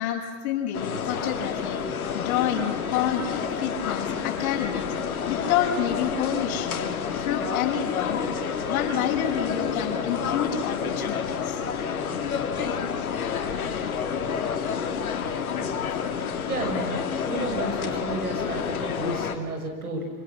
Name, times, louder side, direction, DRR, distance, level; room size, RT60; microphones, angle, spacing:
voice 1, 0.0-4.8 5.3-6.9 7.2-11.6, left 9 dB, 60° left, -2 dB, 7.3 m, -29 dB
sound 1, 0.7-19.4, left 6 dB, 75° left, 3.1 m, -29 dB
voice 2, 16.5-20.1, right 2 dB, 85° right, 3 dB, 6.6 m, -32 dB
28.0 x 27.0 x 7.5 m, 1.5 s
hypercardioid pair, 85°, 43 cm